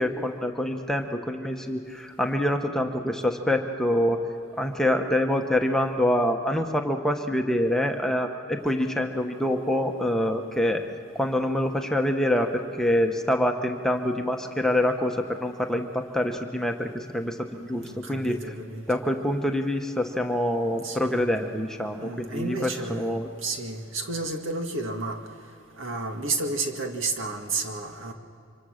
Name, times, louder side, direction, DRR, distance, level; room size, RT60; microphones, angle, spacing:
voice 1, 0.0-4.2 4.6-10.8 11.1-18.5 18.9-23.3, left 1 dB, 5° left, 3 dB, 1.1 m, -26 dB
voice 2, 17.8-18.9 20.8-21.2 22.0-25.2 25.8-28.1, right 3 dB, 75° right, 4 dB, 2.0 m, -32 dB
25.5 x 25.0 x 6.5 m, 2.6 s
head